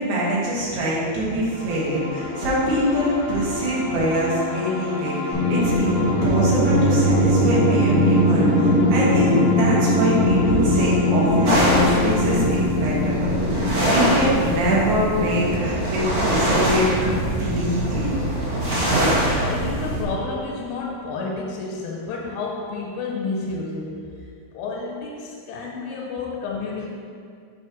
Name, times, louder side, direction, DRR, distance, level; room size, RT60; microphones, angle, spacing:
voice 1, 0.0-18.1, equal, 75° right, -7 dB, 3.4 m, -24 dB
sound 1, 1.4-14.9, left 5 dB, 75° left, 1.0 m, -30 dB
sound 2, 5.3-17.5, equal, 50° right, 2.5 m, -21 dB
sound 3, 11.4-20.0, right 1 dB, 90° right, 0.9 m, -23 dB
voice 2, 18.9-24.1 24.5-26.9, left 3 dB, 90° left, -2 dB, 2.8 m, -30 dB
7.5 x 3.1 x 6.0 m, 2.2 s
omnidirectional pair, 4.7 m